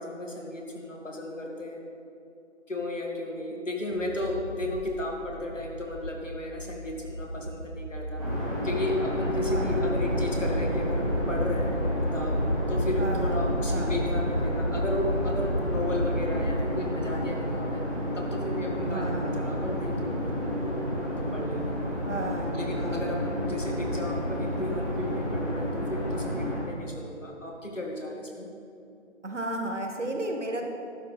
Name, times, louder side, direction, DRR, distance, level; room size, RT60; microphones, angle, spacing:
voice 1, 0.0-1.8 2.7-8.2 8.6-11.7 12.0-12.4 12.7-17.8 18.2-21.8 22.5-28.5, left 2 dB, 80° left, 0 dB, 2.2 m, -34 dB
sound 1, 3.9-15.8, right 1 dB, 85° right, 2.7 m, -41 dB
sound 2, 8.2-26.6, equal, 30° right, 2.7 m, -31 dB
sound 3, 9.2-16.6, equal, 50° left, 2.1 m, -30 dB
voice 2, 9.5-9.9 13.0-13.4 13.7-13.9 18.8-19.5 22.0-23.4 29.2-30.6, right 1 dB, 70° right, 2 dB, 1.6 m, -34 dB
11.5 x 8.3 x 4.1 m, 2.7 s
figure-of-eight pair, 170°, 37 cm